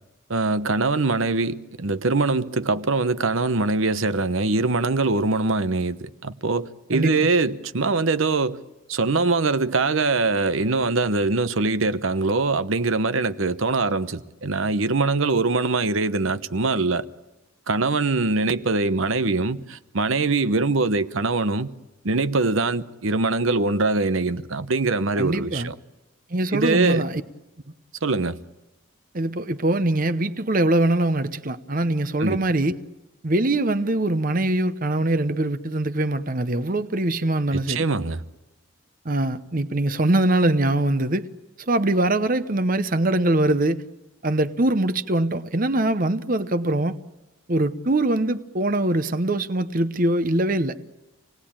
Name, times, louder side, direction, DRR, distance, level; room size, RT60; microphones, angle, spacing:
voice 1, 0.3-8.6 8.9-17.1 17.7-21.7 22.0-25.7 26.5-27.1 28.0-28.4 32.2-32.4 37.5-38.2, right 3 dB, 70° right, 0.9 m, -23 dB
voice 2, 25.2-25.7 26.3-27.2 29.1-32.8 33.2-37.8 39.0-41.2 41.7-43.8 44.2-47.0 47.5-50.8, right 1 dB, 40° right, 0.8 m, -22 dB
27.5 x 19.0 x 8.8 m
head